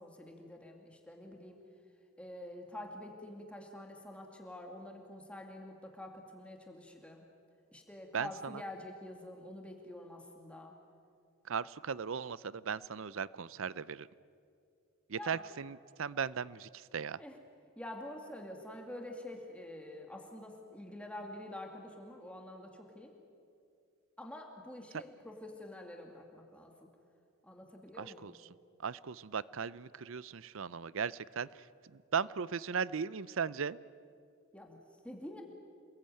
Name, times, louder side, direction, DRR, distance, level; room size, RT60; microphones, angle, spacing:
voice 1, 0.0-1.6 2.2-7.2 7.7-10.7 15.1-15.4 17.2-17.4 17.8-23.1 24.2-26.9 27.4-28.3 34.5-35.4, left 1 dB, 5° left, 1 dB, 2.3 m, -47 dB
voice 2, 8.1-8.6 11.4-14.1 15.1-17.2 24.9-25.0 28.0-28.3 28.8-33.8, right 6 dB, 65° right, 19 dB, 0.6 m, -37 dB
28.5 x 21.0 x 9.2 m, 2.4 s
head